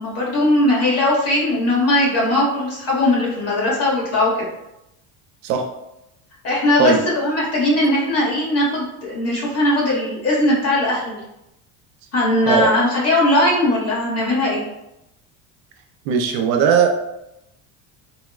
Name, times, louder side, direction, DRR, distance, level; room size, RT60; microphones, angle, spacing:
voice 1, 0.0-4.5 6.4-11.2 12.1-14.6, left 1 dB, 40° left, -4 dB, 1.3 m, -19 dB
voice 2, 16.1-16.9, right 7 dB, 70° right, 4 dB, 0.5 m, -17 dB
4.1 x 2.1 x 2.3 m, 0.88 s
cardioid pair, 140°, 36 cm